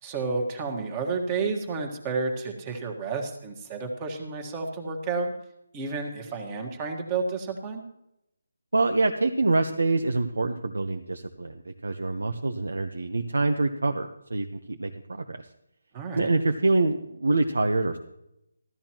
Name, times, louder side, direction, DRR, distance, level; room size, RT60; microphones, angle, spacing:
voice 1, 0.0-5.3 5.7-7.8 15.9-16.3, right 4 dB, 20° right, 3 dB, 1.6 m, -31 dB
voice 2, 8.7-15.4 16.1-18.0, right 2 dB, 90° right, 4 dB, 1.0 m, -26 dB
15.5 x 12.5 x 3.0 m, 0.80 s
figure-of-eight pair, 165°, 0 cm